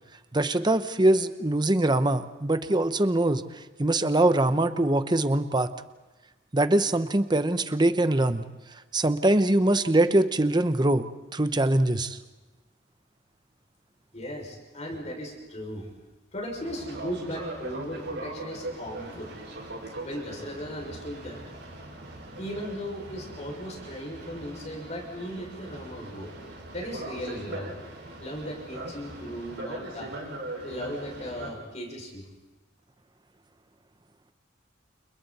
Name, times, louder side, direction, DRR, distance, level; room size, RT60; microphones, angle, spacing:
voice 1, 0.3-3.4 3.8-5.7 6.5-8.4 8.9-12.2, right 1 dB, 20° right, 11 dB, 0.9 m, -23 dB
voice 2, 14.1-15.9 16.3-19.3 20.0-21.4 22.4-26.3 26.7-27.8 28.2-30.1 30.6-32.3, equal, 35° left, 0 dB, 6.2 m, -37 dB
Boat Water vehicle, 16.6-31.5, right 2 dB, 60° right, 6.0 m, -40 dB
29.5 x 29.0 x 4.3 m, 1.2 s
head